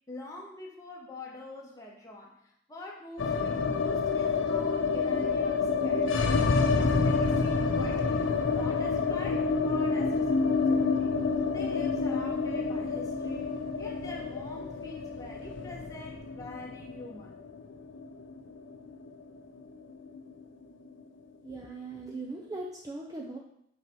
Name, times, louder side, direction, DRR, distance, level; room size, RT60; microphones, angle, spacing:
voice 1, 0.1-2.3 2.7-6.4 6.7-8.2 8.5-11.1 11.5-13.5 13.8-17.4, left 2 dB, 20° left, -2 dB, 1.3 m, -45 dB
sound 1, 3.2-19.3 19.5-19.6 19.9-20.6, left 4 dB, 75° left, 0.5 m, -28 dB
voice 2, 21.4-23.4, right 2 dB, 20° right, 0 dB, 0.6 m, -39 dB
5.8 x 5.4 x 4.6 m, 0.74 s
head